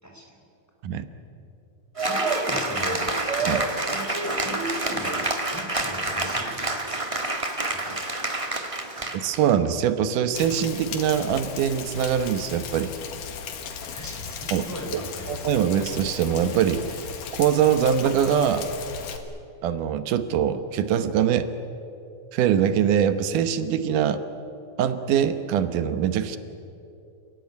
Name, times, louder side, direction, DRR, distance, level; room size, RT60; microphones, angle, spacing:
voice 1, 0.0-0.4 2.0-3.1 3.4-3.6 3.9-7.1 7.7-8.1 8.8-9.2 13.8-15.5, equal, 5° left, 0 dB, 4.3 m, -36 dB
Cheering / Applause, 2.0-9.5, right 2 dB, 20° right, 0.8 m, -28 dB
voice 2, 9.2-12.9 14.5-14.7 14.9-15.0 15.3-17.0 17.3-18.7 19.6-21.5 22.3-24.2 24.8-26.4, right 9 dB, 90° right, 11 dB, 2.7 m, -23 dB
Rain, 10.3-19.2, left 6 dB, 90° left, 3.3 m, -36 dB
29.0 x 17.0 x 9.5 m, 2.7 s
omnidirectional pair, 3.6 m